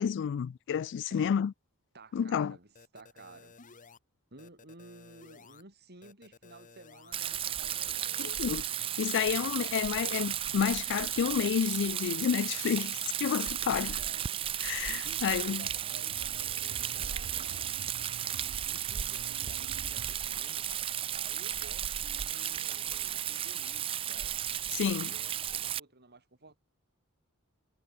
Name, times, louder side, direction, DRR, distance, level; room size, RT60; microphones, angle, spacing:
voice 1, 0.0-1.5 2.1-2.6 8.2-8.6 9.0-14.0 14.6-15.7 24.7-25.1, left 8 dB, 55° left, 0.3 m, -30 dB
voice 2, 1.9-3.6 4.3-8.1 13.7-14.4 14.9-17.8 18.7-20.7 21.1-24.4 25.0-26.6, right 2 dB, 50° right, 7.1 m, -54 dB
sound 1, 2.7-4.0 4.4-5.6 6.0-7.2 7.6-8.9, left 4 dB, 40° left, 1.7 m, -55 dB
Rain, 7.1-25.8, right 10 dB, 25° right, 0.3 m, -34 dB
sound 2, 15.0-20.1, right 5 dB, 80° right, 0.6 m, -49 dB
head